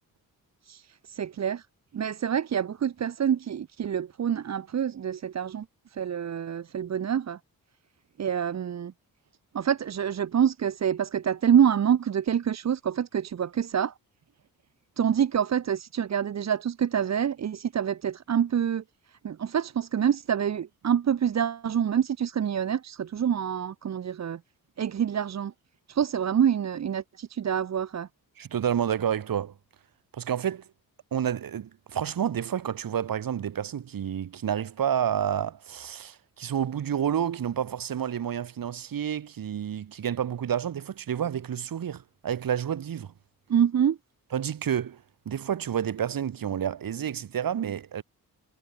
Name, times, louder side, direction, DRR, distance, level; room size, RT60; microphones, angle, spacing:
voice 1, 0.6-1.7 1.9-7.4 8.2-8.9 9.5-13.9 15.0-24.4 24.8-25.5 25.9-28.1 43.5-44.0, right 8 dB, 45° right, 1.2 m, -26 dB
voice 2, 28.4-29.5 30.1-30.6 31.1-43.1 44.3-48.0, right 9 dB, 65° right, 7.1 m, -29 dB
wide cardioid pair, 175°, 36 cm